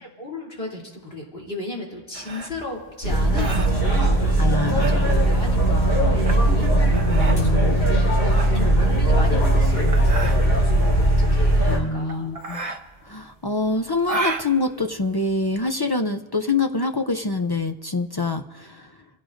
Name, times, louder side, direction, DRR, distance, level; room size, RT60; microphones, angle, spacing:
voice 1, 0.0-7.0 7.3-7.9 8.3-12.5, left 2 dB, 65° left, -4 dB, 3.5 m, -36 dB
sound 1, 2.1-15.7, right 3 dB, 35° right, 1.0 m, -34 dB
sound 2, 3.0-11.8, right 1 dB, 90° left, 4.9 m, -19 dB
voice 2, 4.4-5.2 7.1-7.9 11.6-12.6 13.0-18.9, left 3 dB, 30° left, 7 dB, 0.4 m, -25 dB
28.0 x 16.0 x 2.6 m, 1.3 s
omnidirectional pair, 1.1 m